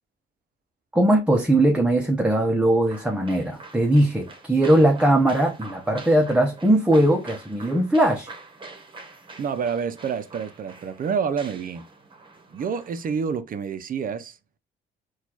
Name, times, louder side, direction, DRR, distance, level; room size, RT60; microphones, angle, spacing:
voice 1, 0.9-8.3, right 1 dB, 5° right, 0.7 m, -20 dB
sound 1, 2.9-13.1, right 3 dB, 25° right, 1.0 m, -45 dB
voice 2, 9.4-11.8 12.5-14.4, right 6 dB, 45° right, 0.5 m, -28 dB
4.2 x 2.4 x 2.8 m
cardioid pair, 90°, 20 cm